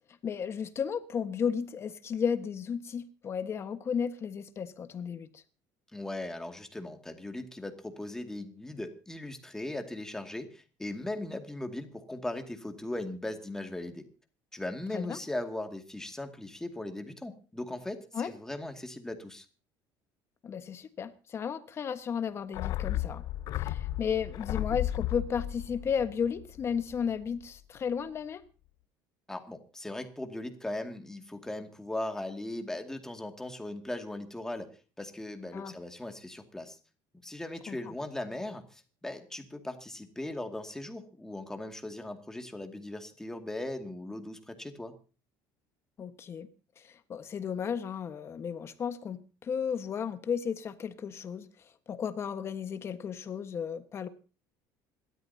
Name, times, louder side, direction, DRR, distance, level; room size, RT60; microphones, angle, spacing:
voice 1, 0.2-5.4 14.9-15.2 18.1-18.3 20.4-23.2 23.5-28.4 35.5-35.7 37.7-37.9 46.0-46.5 46.8-51.5 51.9-54.1, left 7 dB, 35° left, 1.4 m, -34 dB
voice 2, 5.9-14.1 14.5-19.5 29.3-36.8 37.2-44.9, left 1 dB, 5° left, 2.2 m, -38 dB
sound 1, 22.5-27.1 27.4-27.5, left 14 dB, 55° left, 0.7 m, -34 dB
27.0 x 13.0 x 2.8 m
cardioid pair, 135°, 8 cm